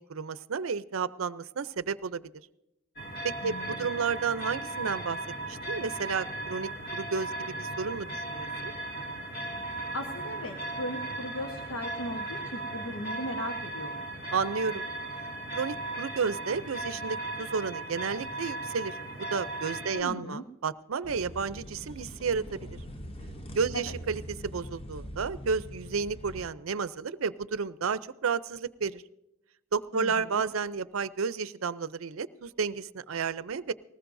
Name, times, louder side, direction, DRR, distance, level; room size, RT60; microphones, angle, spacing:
voice 1, 0.0-2.3 3.2-5.2 5.4-8.7 14.3-14.8 15.5-19.0 19.3-22.8 23.5-29.0 29.7-33.7, right 5 dB, 80° right, 15 dB, 0.5 m, -32 dB
sound 1, 3.0-20.0, right 2 dB, 50° left, 2.1 m, -37 dB
voice 2, 3.4-3.9 9.9-14.0 19.9-20.4 23.7-23.8 29.9-30.4, left 1 dB, 80° left, 4 dB, 1.2 m, -38 dB
sound 2, 21.0-26.5, equal, 25° left, 0.8 m, -42 dB
19.5 x 19.5 x 2.6 m, 0.88 s
head